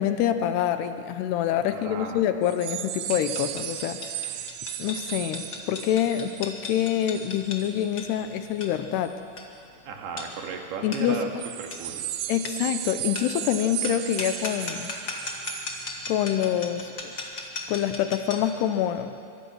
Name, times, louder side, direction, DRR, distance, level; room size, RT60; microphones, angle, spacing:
voice 1, 0.0-4.4 4.8-9.2 10.8-11.4 12.3-14.9 16.1-17.1 17.7-19.2, left 10 dB, 80° left, 9 dB, 2.8 m, -26 dB
voice 2, 1.7-2.2 9.9-11.3 11.6-12.1, right 5 dB, 70° right, 2 dB, 3.9 m, -35 dB
sound 1, 2.4-7.9 8.2-8.5 9.0-9.1 11.4-16.7 17.1-17.3, right 13 dB, 85° right, 2.0 m, -36 dB
sound 2, 3.1-18.6, left 2 dB, 35° left, 1.9 m, -38 dB
24.5 x 23.0 x 6.3 m, 2.5 s
omnidirectional pair, 4.8 m